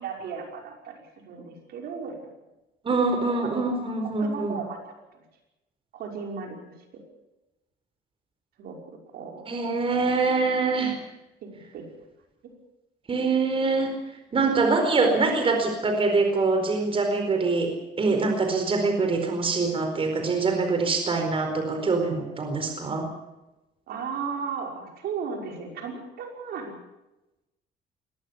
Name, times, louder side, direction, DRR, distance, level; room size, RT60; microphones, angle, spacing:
voice 1, 0.0-2.3 3.4-3.6 4.2-4.8 5.9-6.6 6.9-7.0 8.6-9.4 11.4-11.8 23.9-26.7, right 6 dB, 70° right, 2 dB, 5.8 m, -35 dB
voice 2, 2.8-4.6 9.5-11.0 13.1-13.9 14.3-23.1, right 3 dB, 30° right, 5 dB, 4.5 m, -24 dB
22.0 x 18.5 x 7.1 m, 0.97 s
cardioid pair, 110°, 17 cm